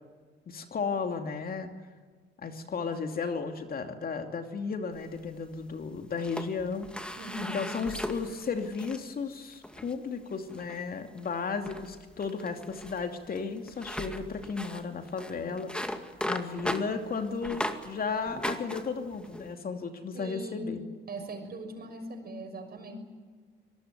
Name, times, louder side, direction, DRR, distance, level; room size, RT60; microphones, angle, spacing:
voice 1, 0.5-1.7 2.4-6.9 7.5-15.7 16.2-20.8, left 5 dB, 50° left, 5 dB, 2.7 m, -34 dB
sound 1, 5.0-5.7 6.1-9.0 9.5-10.0 10.5-10.9 11.2-11.3 11.6-17.9 18.2-19.5, equal, 5° left, 2.2 m, -38 dB
voice 2, 7.2-7.7 20.1-20.7 21.1-23.0, right 1 dB, 50° right, 5 dB, 6.3 m, -40 dB
25.0 x 19.5 x 9.4 m, 1.5 s
cardioid pair, 90°, 20 cm